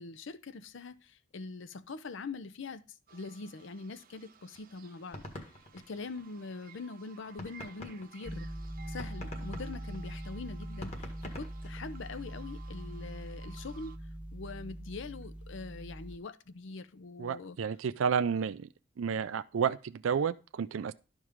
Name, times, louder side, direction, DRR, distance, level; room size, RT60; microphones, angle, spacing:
voice 1, 0.0-5.3 5.7-8.5 8.9-13.9 14.3-17.6, left 3 dB, 70° left, 0.6 m, -43 dB
sound 1, 3.1-14.0, right 7 dB, 50° right, 0.8 m, -57 dB
sound 2, 4.6-6.6 7.0-7.1 7.4-12.3, left 1 dB, 35° left, 1.7 m, -46 dB
sound 3, 8.3-16.2, right 1 dB, 5° right, 0.4 m, -42 dB
voice 2, 17.2-18.7 19.0-20.9, right 7 dB, 90° right, 0.4 m, -31 dB
12.0 x 4.8 x 3.6 m
head